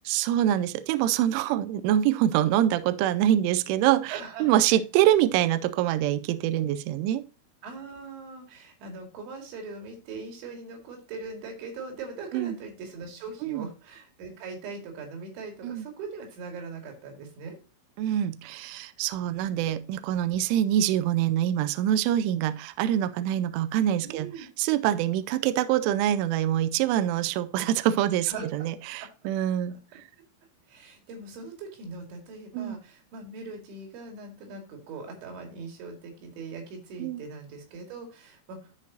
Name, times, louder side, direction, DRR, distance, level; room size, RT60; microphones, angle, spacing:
voice 1, 0.1-7.2 12.3-12.6 13.4-13.7 15.6-15.9 18.0-30.0 32.5-32.8 37.0-37.2, right 12 dB, 85° right, 2.9 m, -25 dB
voice 2, 4.1-4.5 7.6-17.6 24.0-24.5 28.3-28.5 30.7-38.7, right 4 dB, 65° right, 4.4 m, -40 dB
13.0 x 5.2 x 2.8 m
omnidirectional pair, 5.8 m